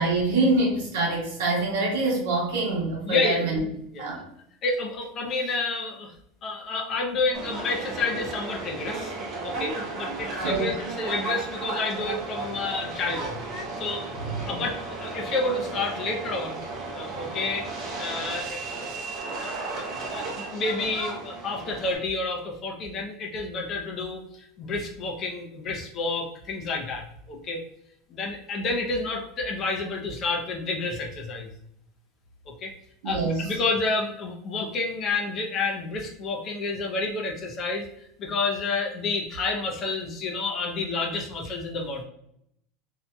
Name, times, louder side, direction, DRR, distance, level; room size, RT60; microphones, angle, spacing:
voice 1, 0.0-3.6 4.0-4.2 10.4-10.7 14.2-14.3 33.0-33.5, right 2 dB, 80° right, -2 dB, 1.1 m, -25 dB
voice 2, 3.1-3.5 3.9-4.0 4.6-6.1 6.4-9.1 9.4-13.4 13.8-14.1 14.5-16.6 16.9-17.7 18.0-18.6 19.4-24.3 24.6-27.6 28.1-31.5 32.5-32.7 33.0-37.9 38.2-42.0, left 3 dB, 35° left, 1 dB, 0.6 m, -29 dB
Subway metro underground, 7.3-22.0, right 3 dB, 40° right, 0.7 m, -34 dB
2.7 x 2.7 x 2.2 m, 0.74 s
supercardioid pair, 130°, 0 cm